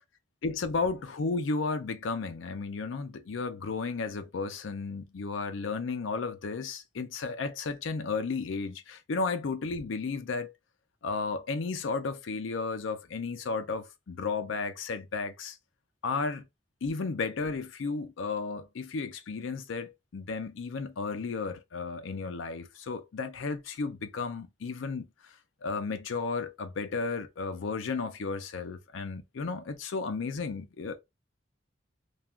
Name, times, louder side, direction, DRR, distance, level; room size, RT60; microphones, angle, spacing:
voice 1, 0.4-10.5 11.0-15.6 16.0-16.4 16.8-25.1 25.6-31.0, left 4 dB, 85° left, 0.5 m, -33 dB
3.2 x 2.2 x 2.4 m
head